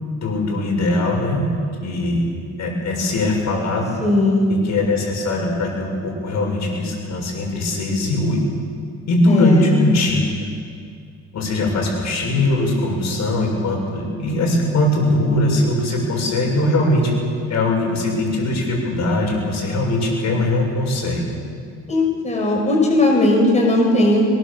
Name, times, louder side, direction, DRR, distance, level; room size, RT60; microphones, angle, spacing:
voice 1, 0.2-1.5 1.8-2.3 2.6-4.0 4.5-8.4 9.1-10.3 11.3-17.1 17.5-21.3, left 1 dB, 60° left, -1 dB, 7.2 m, -20 dB
voice 2, 4.0-4.5 9.3-9.8 21.9-24.3, left 1 dB, 25° left, -1 dB, 5.8 m, -17 dB
23.0 x 22.0 x 7.3 m, 2.2 s
cardioid pair, 90°, 30 cm